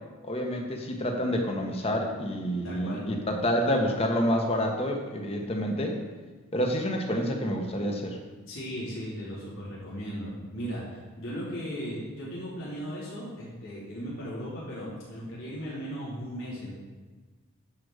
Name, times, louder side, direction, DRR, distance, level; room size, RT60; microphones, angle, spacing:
voice 1, 0.2-6.0 6.5-8.2, equal, 30° left, 2 dB, 1.4 m, -28 dB
voice 2, 2.6-3.1 8.5-16.7, equal, 80° left, -8 dB, 3.7 m, -37 dB
11.5 x 5.1 x 6.6 m, 1.3 s
head